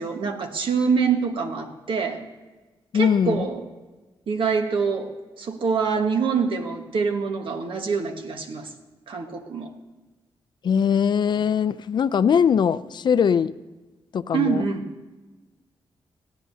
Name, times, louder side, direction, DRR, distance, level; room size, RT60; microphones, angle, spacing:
voice 1, 0.0-2.2 2.9-3.6 4.3-5.1 5.4-8.7 9.1-9.7 14.3-14.8, right 5 dB, 70° right, 4 dB, 1.4 m, -25 dB
voice 2, 2.9-3.5 10.6-13.5 14.1-14.6, left 7 dB, 55° left, 15 dB, 0.4 m, -21 dB
21.0 x 14.5 x 2.7 m, 1.2 s
wide cardioid pair, 140°, 9 cm